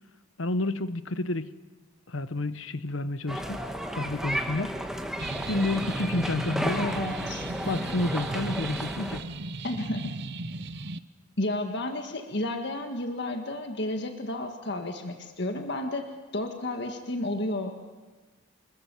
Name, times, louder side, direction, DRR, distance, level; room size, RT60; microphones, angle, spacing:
voice 1, 0.4-1.5 2.1-4.8 5.5-6.9 7.7-9.2, left 2 dB, 75° left, 13 dB, 1.0 m, -30 dB
sound 1, 3.3-9.2, equal, ahead, 1.6 m, -33 dB
sound 2, 5.2-11.0, right 3 dB, 60° right, 0.9 m, -37 dB
voice 2, 6.8-7.5 9.6-10.1 11.4-17.7, left 1 dB, 60° left, 5 dB, 1.7 m, -32 dB
26.5 x 21.5 x 7.5 m, 1.3 s
head